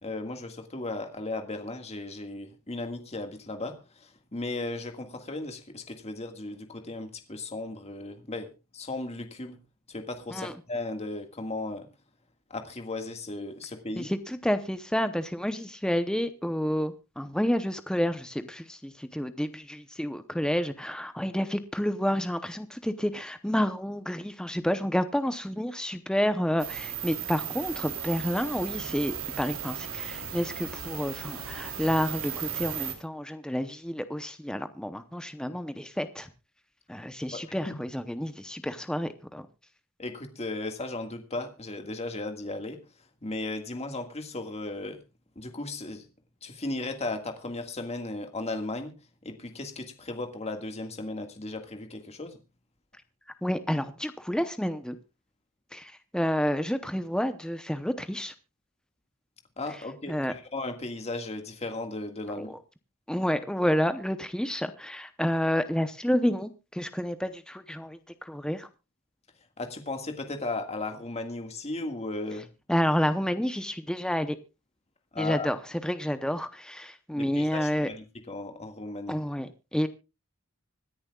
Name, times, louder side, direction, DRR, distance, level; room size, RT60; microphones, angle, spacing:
voice 1, 0.0-8.5 8.7-9.6 9.9-11.9 12.5-14.1 37.3-37.7 40.0-42.8 43.2-45.0 45.4-46.0 46.4-48.9 49.2-52.4 59.6-62.5 69.6-72.5 75.1-75.5 77.1-79.2, left 2 dB, 30° left, 1.8 m, -36 dB
voice 2, 14.0-36.3 36.9-39.5 53.4-55.0 55.7-58.3 60.1-60.3 62.4-62.5 63.1-68.7 72.7-74.4 75.2-75.6 75.8-77.9 79.1-79.9, equal, 5° left, 0.7 m, -29 dB
sound 1, 26.6-32.9, right 8 dB, 70° right, 3.2 m, -36 dB
25.5 x 10.5 x 2.3 m
head